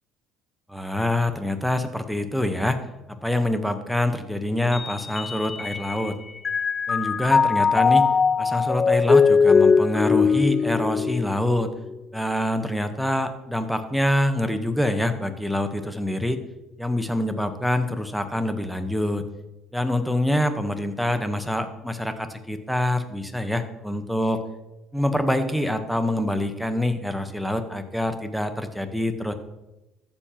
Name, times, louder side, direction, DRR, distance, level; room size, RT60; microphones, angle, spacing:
voice 1, 0.7-2.8 3.2-6.2 6.9-8.1 8.4-11.7 12.1-16.4 16.8-19.2 19.7-24.4 24.9-29.3, left 1 dB, ahead, 8 dB, 1.1 m, -25 dB
Mallet percussion, 4.7-6.1 6.4-11.9, left 5 dB, 30° left, 0.3 m, -20 dB
14.0 x 7.1 x 3.0 m, 0.99 s
supercardioid pair, 90°, 0 cm